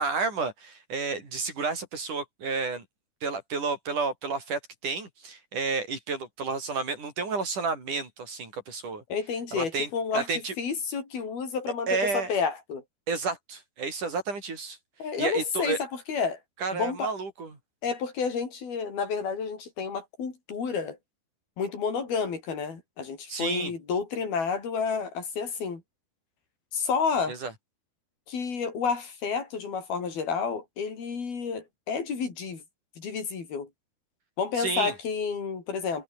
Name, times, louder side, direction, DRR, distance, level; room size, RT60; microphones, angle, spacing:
voice 1, 0.0-2.8 3.2-9.0 9.5-10.5 11.9-12.3 13.1-14.8 15.2-15.8 16.6-17.6 23.3-23.7 27.3-27.5 34.6-34.9, right 4 dB, 55° right, 7.9 m, -31 dB
voice 2, 9.1-12.8 15.0-16.4 16.7-17.1 17.8-21.0 21.6-25.8 26.7-27.4 28.3-32.6 33.0-33.7 34.4-36.0, left 5 dB, 90° left, 7.0 m, -30 dB
omnidirectional pair, 4.2 m